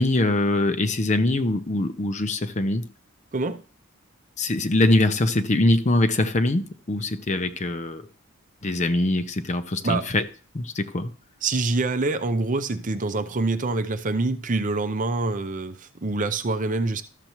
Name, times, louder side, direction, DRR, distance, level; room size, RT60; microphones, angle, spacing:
voice 1, 0.0-2.9 4.4-8.0 8.6-10.2 10.5-11.1, left 2 dB, 35° left, 0.7 m, -23 dB
voice 2, 3.3-3.6 9.8-10.1 11.4-17.0, right 3 dB, 40° right, 0.6 m, -25 dB
13.0 x 6.8 x 3.0 m
head